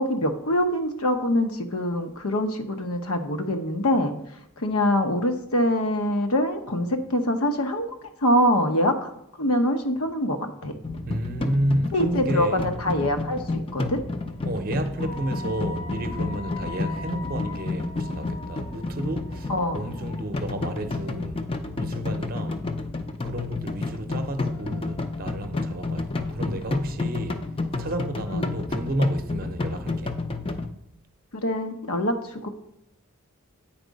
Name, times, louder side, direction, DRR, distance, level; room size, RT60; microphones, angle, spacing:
voice 1, 0.0-4.1 4.6-7.9 8.2-9.1 9.4-10.7 11.9-13.4 13.7-14.0 18.8-19.1 19.5-19.8 28.3-28.5 31.3-32.1 32.4-32.5, left 1 dB, 80° left, 1.0 m, -24 dB
sound 1, 10.8-30.7, left 3 dB, 25° left, 0.5 m, -30 dB
voice 2, 11.1-12.7 14.4-21.4 21.8-22.6 23.2-27.4 27.8-30.2, right 1 dB, 40° right, 0.7 m, -31 dB
8.7 x 4.7 x 5.2 m
head